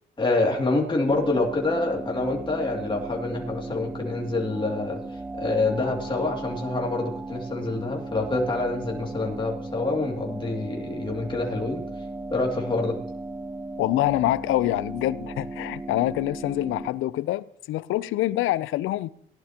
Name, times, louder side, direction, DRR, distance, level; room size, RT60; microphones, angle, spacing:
voice 1, 0.2-11.8 12.3-13.0, left 2 dB, 25° left, 2.4 m, -26 dB
sound 1, 1.1-16.9, right 2 dB, 10° right, 0.4 m, -36 dB
voice 2, 13.8-19.1, left 15 dB, 85° left, 0.5 m, -25 dB
17.5 x 11.0 x 2.9 m
cardioid pair, 90°, 20 cm